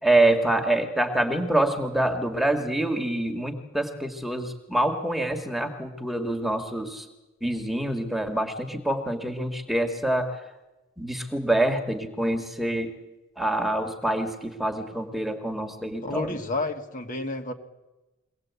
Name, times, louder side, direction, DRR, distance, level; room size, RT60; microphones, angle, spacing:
voice 1, 0.0-7.0 7.4-10.4 11.0-12.9 13.4-16.4, right 1 dB, ahead, 4 dB, 1.7 m, -26 dB
voice 2, 16.0-17.5, left 2 dB, 40° left, 5 dB, 1.6 m, -30 dB
23.0 x 18.0 x 8.2 m, 1.0 s
head